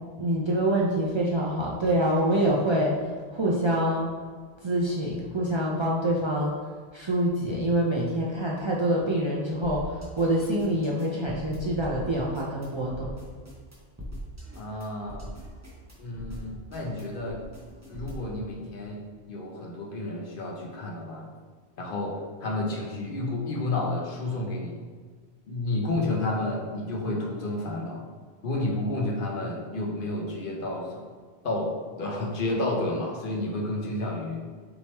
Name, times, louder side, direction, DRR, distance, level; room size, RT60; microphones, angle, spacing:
voice 1, 0.2-3.0 3.3-4.1 4.6-6.5 6.9-13.1, right 1 dB, 50° right, -4 dB, 0.3 m, -26 dB
sound 1, 9.6-18.4, equal, 15° right, 0.7 m, -41 dB
voice 2, 14.5-15.2 16.0-17.4 17.9-19.0 19.3-21.3 21.8-24.8 25.5-28.1 28.4-31.0 31.4-34.4, left 2 dB, 60° left, -1 dB, 0.8 m, -31 dB
3.4 x 2.9 x 4.1 m, 1.6 s
omnidirectional pair, 1.1 m